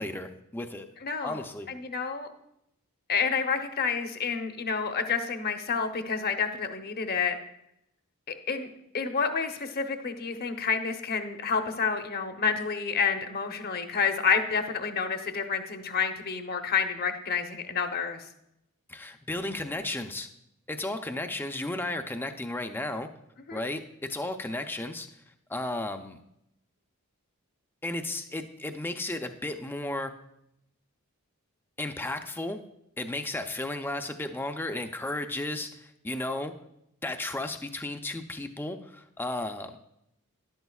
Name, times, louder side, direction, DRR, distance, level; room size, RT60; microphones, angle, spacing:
voice 1, 0.0-0.9 1.2-1.7 18.9-20.3 20.7-23.1 23.5-25.1 25.5-26.2 27.8-30.1 31.8-32.6 33.0-36.5 37.0-39.8, left 2 dB, 10° left, 7 dB, 0.5 m, -34 dB
voice 2, 1.0-2.3 3.1-7.4 8.5-8.7 8.9-18.2 23.5-23.6, left 5 dB, 45° left, 6 dB, 0.9 m, -29 dB
12.5 x 11.0 x 2.4 m, 0.80 s
head